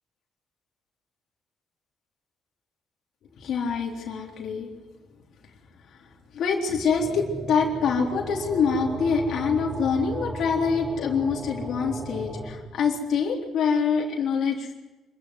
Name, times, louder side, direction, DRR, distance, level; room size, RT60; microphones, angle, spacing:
voice 1, 3.4-4.7 6.0-6.1 6.3-14.7, left 5 dB, 70° left, -1 dB, 3.8 m, -25 dB
sound 1, 7.0-12.5, right 1 dB, 25° right, 6.6 m, -35 dB
26.5 x 14.5 x 9.7 m, 1.1 s
cardioid pair, 90°, 0 cm